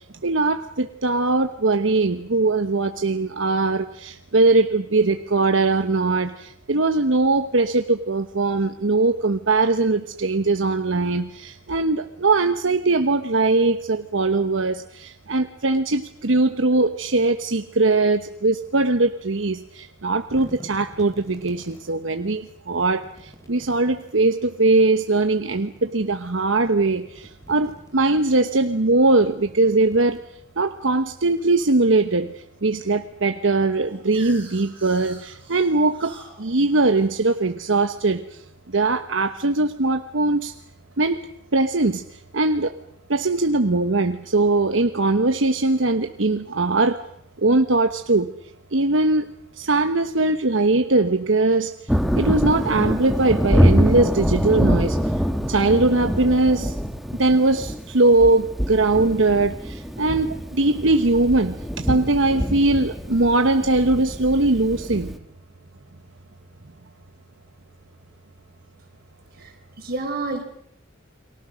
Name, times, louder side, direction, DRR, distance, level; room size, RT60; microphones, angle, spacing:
voice 1, 0.2-6.3 6.7-23.0 23.5-27.0 27.5-30.2 30.6-32.3 32.6-36.1 36.4-38.2 38.7-40.5 41.0-41.2 41.5-42.0 42.3-42.7 43.1-47.0 47.4-48.3 48.7-49.2 49.6-51.7 52.2-55.0 55.5-56.7 57.2-59.5 60.0-65.1, right 2 dB, 75° right, 7 dB, 1.1 m, -20 dB
sound 1, 20.2-21.9 22.7-24.3 25.3-26.3 26.7-28.2 28.8-30.6, equal, 15° left, 4.1 m, -47 dB
sound 2, 33.6-38.4, right 3 dB, 25° right, 6.6 m, -47 dB
Thunder, 51.9-65.2, equal, ahead, 1.6 m, -24 dB
voice 2, 69.4-70.4, right 2 dB, 50° right, 3 dB, 5.5 m, -29 dB
30.0 x 24.0 x 6.4 m, 0.73 s
head